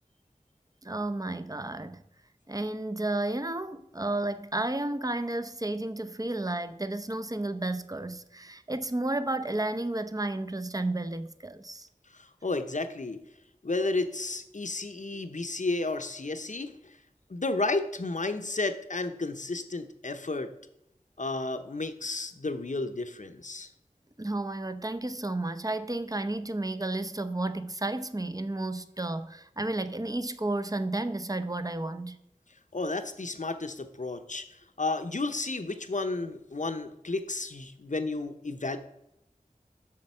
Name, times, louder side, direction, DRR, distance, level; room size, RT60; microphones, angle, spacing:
voice 1, 0.8-2.0 2.5-11.9 24.2-32.2, right 2 dB, 25° right, 0.6 m, -32 dB
voice 2, 12.1-13.2 13.6-17.0 17.3-20.5 21.2-23.7 32.7-38.8, left 3 dB, 60° left, 0.8 m, -32 dB
7.5 x 6.6 x 5.5 m
wide cardioid pair, 45°, 14 cm